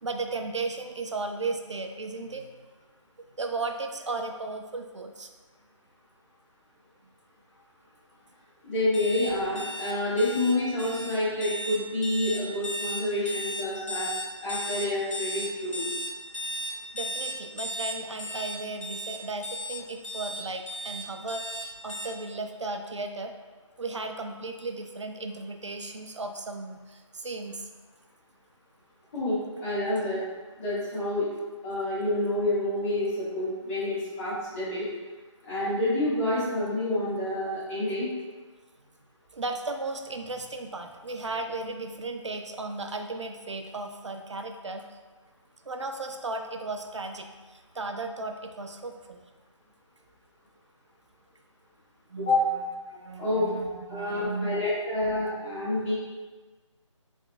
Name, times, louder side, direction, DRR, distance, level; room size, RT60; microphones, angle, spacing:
voice 1, 0.0-2.5 3.4-5.3 16.9-23.3 23.8-27.7 39.3-45.0 45.6-49.2 52.1-52.4 52.9-54.6, right 3 dB, 65° right, 5 dB, 0.4 m, -35 dB
voice 2, 8.6-14.1 14.4-15.9 29.1-30.2 30.6-31.3 31.6-34.8 35.4-38.1 52.2-52.5 53.2-53.5 53.9-55.9, left 1 dB, 25° left, -12 dB, 1.3 m, -28 dB
sound 1, 8.9-22.1, equal, 90° left, 0.7 m, -35 dB
4.1 x 3.5 x 2.3 m, 1.3 s
figure-of-eight pair, 150°, 16 cm